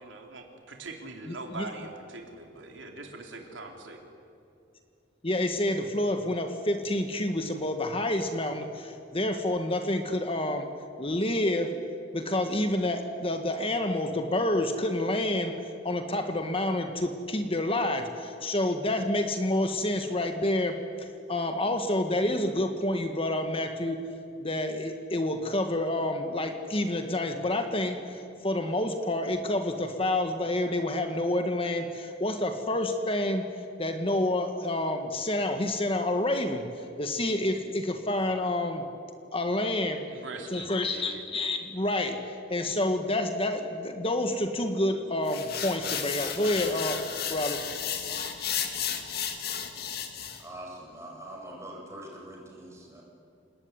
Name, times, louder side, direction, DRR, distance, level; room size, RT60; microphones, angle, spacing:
voice 1, 0.0-4.0 40.1-41.2, right 3 dB, 80° right, 2 dB, 3.7 m, -42 dB
voice 2, 1.3-1.7 5.2-10.7 11.0-11.8 12.1-15.6 15.8-24.1 24.4-33.5 33.8-38.9 39.3-40.0 40.5-47.0 47.3-47.6, left 1 dB, 30° left, 6 dB, 1.6 m, -28 dB
sound 1, 45.3-50.4, left 8 dB, 55° left, 2.3 m, -33 dB
voice 3, 50.4-53.0, right 1 dB, 15° right, -2 dB, 7.1 m, -43 dB
29.0 x 19.5 x 9.7 m, 2.5 s
head